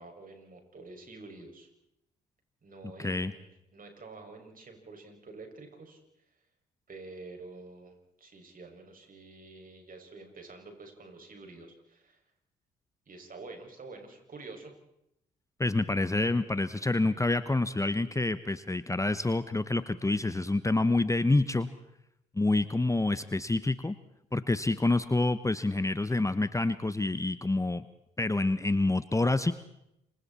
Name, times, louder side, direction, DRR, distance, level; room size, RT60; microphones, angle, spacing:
voice 1, 0.0-1.7 2.6-6.0 6.9-12.2 13.1-14.7, right 3 dB, 40° right, 3 dB, 6.6 m, -48 dB
voice 2, 3.0-3.3 15.6-21.7 22.3-24.0 24.3-27.8 28.2-29.5, left 2 dB, 15° left, 14 dB, 1.1 m, -27 dB
27.5 x 24.5 x 4.4 m, 0.82 s
hypercardioid pair, 50°, 21 cm